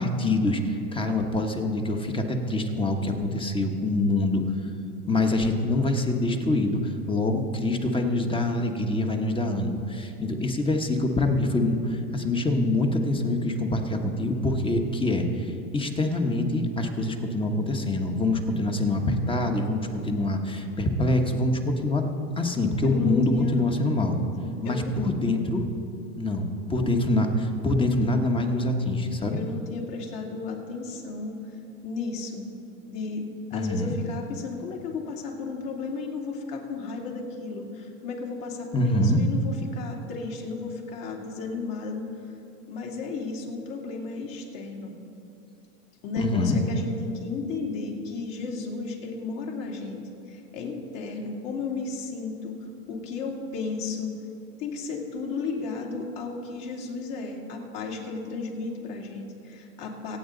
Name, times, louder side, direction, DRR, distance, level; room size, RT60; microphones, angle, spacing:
voice 1, 0.0-4.4 5.0-22.1 22.4-24.2 24.6-25.7 26.1-29.4 33.5-34.0 38.7-39.2 46.2-46.6, left 2 dB, 10° left, 4 dB, 1.2 m, -25 dB
voice 2, 22.9-23.7 24.4-25.0 29.3-31.4 31.8-32.5 32.9-42.1 42.7-44.9 46.0-50.0 50.3-52.6 52.9-54.1 54.6-60.2, left 4 dB, 45° left, 0 dB, 2.8 m, -34 dB
25.5 x 8.7 x 4.0 m, 2.8 s
hypercardioid pair, 120°, 45 cm